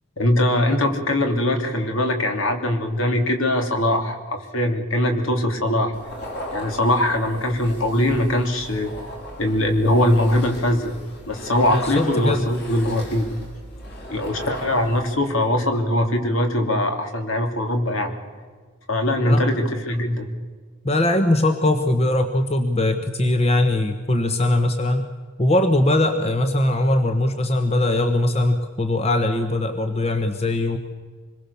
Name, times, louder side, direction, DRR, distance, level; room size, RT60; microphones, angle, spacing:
voice 1, 0.2-5.9 6.5-8.9 9.4-10.9 11.3-13.3 14.1-18.1 18.9-20.3, left 1 dB, 65° left, 4 dB, 3.2 m, -21 dB
sound 1, 5.9-15.3, left 1 dB, 50° left, 6.8 m, -37 dB
voice 2, 11.7-12.5 19.2-19.4 20.8-25.1 25.4-30.8, left 1 dB, 30° left, 7 dB, 1.2 m, -20 dB
26.0 x 21.5 x 7.1 m, 1.5 s
head